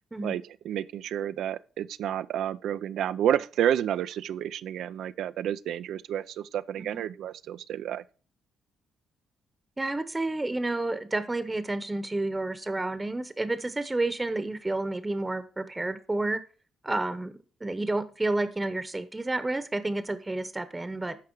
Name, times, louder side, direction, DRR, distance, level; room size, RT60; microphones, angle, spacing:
voice 1, 0.2-8.0, right 10 dB, 75° right, 0.5 m, -30 dB
voice 2, 9.8-16.4 16.8-21.2, right 2 dB, 15° right, 1.0 m, -30 dB
12.5 x 4.8 x 4.7 m
cardioid pair, 90°, 0 cm